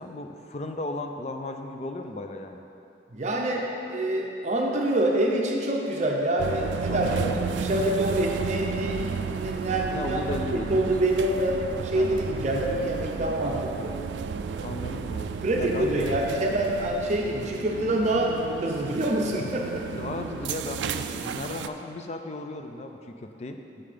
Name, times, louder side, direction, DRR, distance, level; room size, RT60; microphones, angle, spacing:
voice 1, 0.0-2.6 6.9-7.4 8.9-9.0 9.9-10.9 11.9-12.2 14.6-15.3 15.6-16.1 19.9-23.6, left 2 dB, 35° left, 5 dB, 0.4 m, -35 dB
voice 2, 3.1-14.0 15.4-19.9, right 1 dB, 40° right, 0 dB, 0.6 m, -26 dB
sound 1, 6.4-21.7, right 6 dB, 80° right, 0.3 m, -33 dB
6.7 x 5.5 x 5.0 m, 2.7 s
head